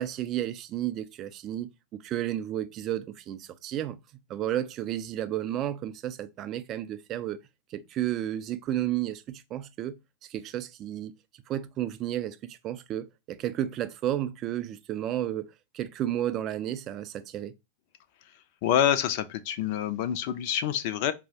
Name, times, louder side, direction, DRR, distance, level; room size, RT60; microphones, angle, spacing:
voice 1, 0.0-1.7 2.0-4.0 4.3-7.4 7.7-10.0 10.3-11.1 11.5-17.5, right 12 dB, 35° right, 0.3 m, -32 dB
voice 2, 18.6-21.1, left 10 dB, 50° left, 0.4 m, -26 dB
4.5 x 2.0 x 2.7 m
figure-of-eight pair, 90°, 0 cm